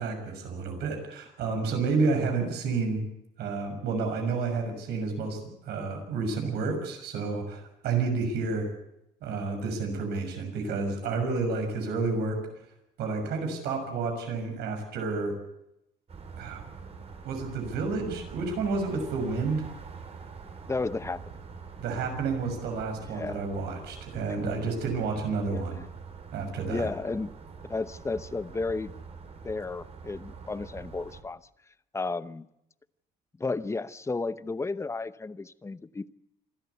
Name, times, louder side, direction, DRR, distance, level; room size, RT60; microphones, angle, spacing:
voice 1, 0.0-3.0 3.4-5.4 5.7-8.7 9.2-12.4 13.0-15.3 16.4-16.7 17.2-19.6 21.8-25.8 26.3-26.9, right 4 dB, 75° right, 6.4 m, -30 dB
sound 1, 16.1-31.2, right 5 dB, 40° right, 3.6 m, -45 dB
voice 2, 20.7-21.2 23.0-23.4 25.5-25.6 26.7-27.3 27.7-28.9 29.4-31.4 31.9-32.5 33.4-36.1, left 3 dB, 15° left, 0.8 m, -33 dB
26.5 x 13.0 x 8.2 m
cardioid pair, 110°, 17 cm